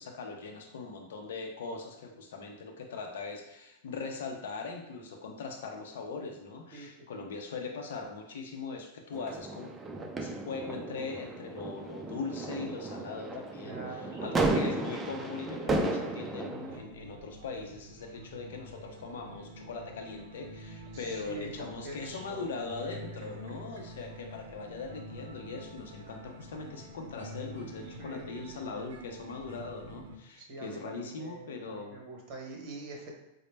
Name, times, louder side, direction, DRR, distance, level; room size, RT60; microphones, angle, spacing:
voice 1, 0.0-9.7 10.2-32.0, left 4 dB, 80° left, 2 dB, 0.5 m, -40 dB
sound 1, 9.1-16.8, right 2 dB, 15° right, 0.3 m, -34 dB
voice 2, 13.6-14.5 20.9-22.5 22.8-23.0 27.9-28.3 30.4-33.1, right 2 dB, 50° right, 0 dB, 0.9 m, -45 dB
sound 2, 16.6-30.2, equal, 90° right, 0.5 m, -47 dB
4.0 x 2.1 x 3.2 m, 0.89 s
supercardioid pair, 145°, 0 cm